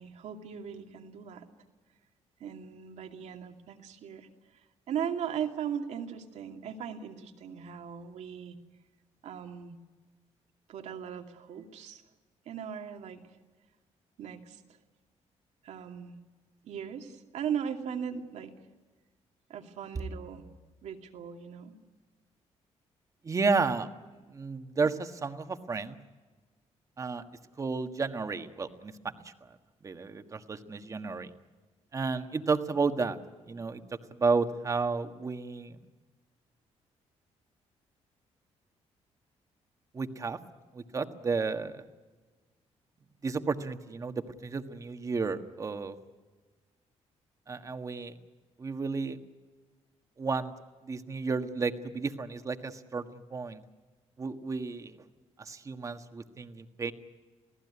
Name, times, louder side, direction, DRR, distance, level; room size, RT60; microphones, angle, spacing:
voice 1, 0.0-1.5 2.4-4.3 4.9-8.6 9.2-9.8 10.7-12.0 12.5-13.2 14.2-14.6 15.6-16.2 16.6-18.5 19.5-20.4 20.8-21.7, right 8 dB, 75° right, 4 dB, 2.5 m, -38 dB
voice 2, 23.2-23.9 24.3-26.0 27.0-27.2 27.6-29.5 29.8-31.3 31.9-33.2 33.5-33.8 34.1-35.8 39.9-40.4 40.7-41.8 43.2-45.9 47.5-48.1 48.6-49.2 50.2-50.5 50.8-53.6 54.2-55.0 55.4-56.9, right 4 dB, 30° right, 7 dB, 1.5 m, -32 dB
28.0 x 17.5 x 9.6 m, 1.3 s
cardioid pair, 145°, 12 cm